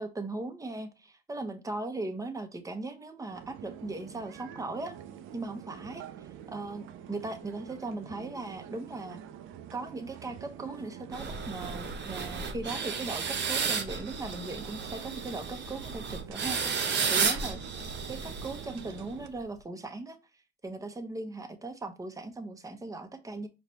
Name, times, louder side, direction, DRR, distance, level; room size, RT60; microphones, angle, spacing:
voice 1, 0.0-5.0 5.3-6.0 6.5-9.2 9.7-17.6 18.1-20.2 20.6-23.5, right 2 dB, 15° right, 7 dB, 0.9 m, -38 dB
sound 1, 3.3-19.3, right 10 dB, 90° right, 0.5 m, -47 dB
sound 2, 11.1-19.1, right 5 dB, 60° right, 1.0 m, -33 dB
4.9 x 3.1 x 2.9 m, 0.27 s
cardioid pair, 90°, 20 cm